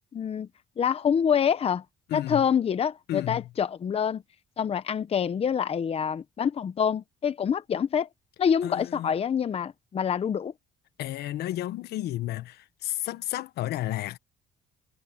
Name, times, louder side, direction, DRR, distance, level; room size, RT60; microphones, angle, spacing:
voice 1, 0.1-0.5 0.8-1.8 2.1-4.2 4.6-8.1 8.4-10.5, left 7 dB, 35° left, 0.9 m, -26 dB
voice 2, 2.1-2.4 3.1-3.4 8.6-9.1 11.0-14.2, left 14 dB, 75° left, 1.3 m, -32 dB
cardioid pair, 110°, 17 cm